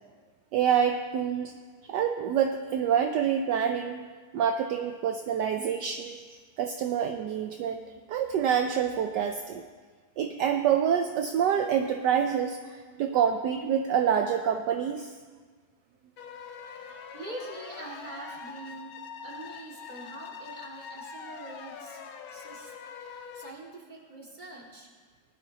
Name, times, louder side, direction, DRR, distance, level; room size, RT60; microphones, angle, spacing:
voice 1, 0.5-1.5 1.9-4.0 4.3-6.2 6.6-9.6 10.2-15.1, right 8 dB, 70° right, 6 dB, 1.0 m, -27 dB
sound 1, 16.2-23.5, left 6 dB, 70° left, 1.5 m, -43 dB
voice 2, 17.1-18.9 19.2-22.0 22.3-22.7 23.0-24.9, right 2 dB, 20° right, -3 dB, 2.2 m, -44 dB
19.0 x 12.5 x 2.9 m, 1.5 s
omnidirectional pair, 2.3 m